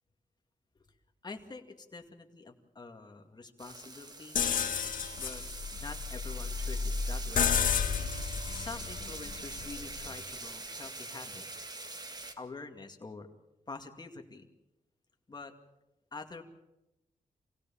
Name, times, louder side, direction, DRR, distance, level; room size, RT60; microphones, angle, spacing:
voice 1, 1.2-4.4 5.2-5.4 5.7-7.6 8.5-11.7 12.4-13.3 13.7-14.5 15.3-15.5 16.1-16.4, left 3 dB, 30° left, 4 dB, 2.2 m, -46 dB
sound 1, 3.6-12.3, right 2 dB, 30° right, 1.8 m, -44 dB
sound 2, 4.4-10.2, left 6 dB, 75° left, 1.6 m, -32 dB
26.5 x 17.0 x 7.2 m, 0.93 s
wide cardioid pair, 125°, 14 cm